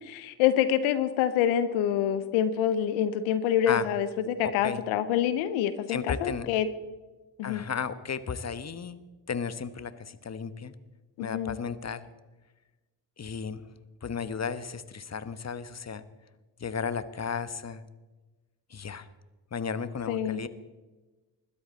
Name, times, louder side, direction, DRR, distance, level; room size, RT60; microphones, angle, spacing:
voice 1, 0.0-6.7 7.4-7.6 11.2-11.5 20.1-20.4, left 10 dB, 85° left, 13 dB, 0.8 m, -26 dB
voice 2, 4.4-4.8 5.9-6.5 7.4-9.0 9.3-10.7 11.2-12.1 13.2-13.6 14.0-16.0 16.6-17.8 18.7-19.1 19.5-20.5, left 6 dB, 35° left, 14 dB, 1.2 m, -34 dB
20.5 x 13.0 x 4.1 m, 1.2 s
hypercardioid pair, 40°, 47 cm